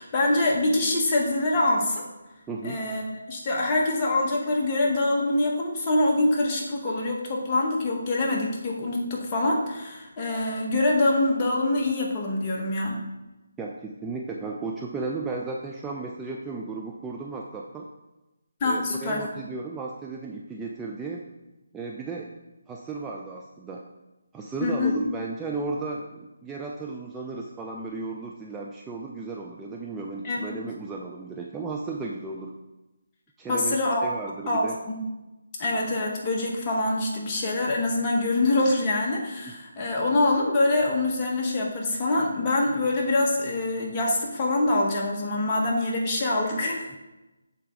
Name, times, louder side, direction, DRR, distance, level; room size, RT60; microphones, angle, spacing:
voice 1, 0.0-2.0 2.6-13.0 18.6-19.2 24.6-25.0 30.2-30.4 33.5-34.1 34.5-35.0 35.6-47.0, left 2 dB, 25° left, -3 dB, 1.2 m, -25 dB
voice 2, 2.5-2.8 13.6-17.9 18.6-21.3 21.7-22.3 22.7-23.9 24.3-32.5 33.4-33.8 34.0-34.8 46.9-47.0, right 3 dB, 10° right, -1 dB, 0.3 m, -34 dB
6.6 x 4.2 x 3.7 m, 1.0 s
figure-of-eight pair, 155°, 0 cm